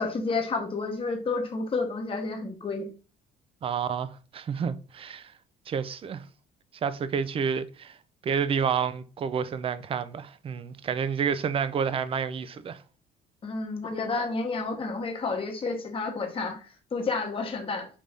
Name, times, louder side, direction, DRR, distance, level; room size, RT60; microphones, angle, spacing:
voice 1, 0.0-2.9 13.4-17.9, left 3 dB, 30° left, 1.1 m, -30 dB
voice 2, 3.6-5.3 5.7-6.2 6.8-8.0 8.2-12.8, right 7 dB, 35° right, 0.4 m, -29 dB
5.1 x 2.6 x 3.3 m
cardioid pair, 110°, 17 cm